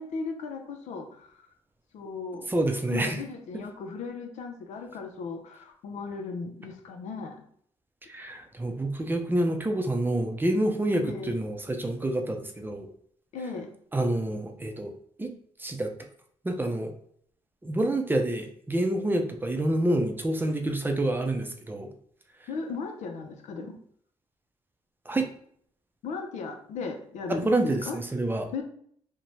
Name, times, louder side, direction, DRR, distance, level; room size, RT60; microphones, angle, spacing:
voice 1, 0.0-1.5 1.9-2.5 2.9-7.4 11.0-11.3 13.3-13.7 22.5-23.8 26.0-28.0 28.5-28.6, left 4 dB, 80° left, 5 dB, 0.4 m, -36 dB
voice 2, 2.5-3.2 8.1-12.9 13.9-14.9 15.2-15.3 15.6-15.9 16.4-16.9 17.6-21.9 25.1-25.3 27.4-28.5, right 1 dB, 15° right, 4 dB, 0.5 m, -27 dB
2.6 x 2.1 x 3.0 m, 0.63 s
cardioid pair, 65°, 12 cm